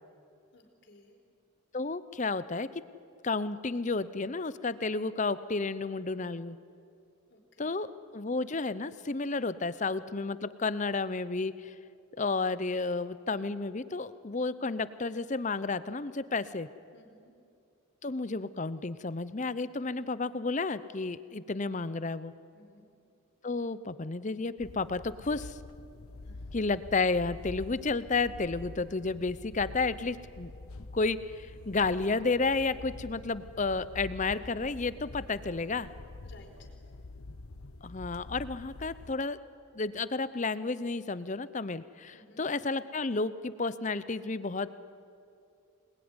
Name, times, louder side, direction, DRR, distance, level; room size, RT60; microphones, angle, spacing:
voice 1, 0.5-1.2 7.3-7.8 16.9-17.3 22.5-22.9 26.2-26.5 36.2-36.7 42.1-42.5, left 1 dB, 50° left, 2 dB, 4.2 m, -57 dB
voice 2, 1.7-2.7 3.2-6.6 7.6-11.7 12.2-16.7 18.0-22.3 23.4-25.6 26.5-30.5 30.9-35.9 37.8-39.4 39.7-44.7, left 3 dB, 35° left, 15 dB, 0.7 m, -32 dB
sound 1, 24.6-39.1, left 2 dB, 80° left, 0.9 m, -46 dB
26.0 x 20.5 x 9.7 m, 2.5 s
head